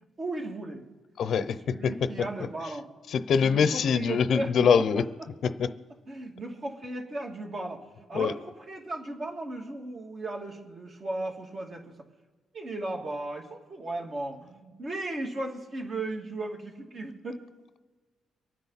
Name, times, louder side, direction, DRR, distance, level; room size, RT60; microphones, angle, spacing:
voice 1, 0.2-0.8 1.4-2.9 3.4-5.3 6.1-11.9 12.5-17.4, right 2 dB, 45° right, 0 dB, 2.7 m, -36 dB
voice 2, 1.2-1.6 1.8-1.9 3.1-5.0 5.6-5.7 8.1-8.3, left 6 dB, 65° left, 13 dB, 0.7 m, -23 dB
24.0 x 9.3 x 4.2 m, 1.3 s
cardioid pair, 90°, 0 cm